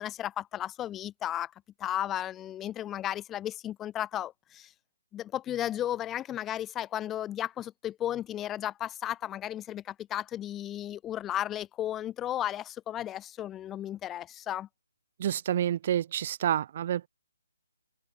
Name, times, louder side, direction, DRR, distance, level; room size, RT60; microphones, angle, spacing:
voice 1, 0.0-1.5 1.8-4.7 5.1-14.7, left 12 dB, 15° left, 7.4 m, -34 dB
voice 2, 15.2-17.1, right 10 dB, 40° right, 6.1 m, -28 dB
open air
figure-of-eight pair, 145°, 0 cm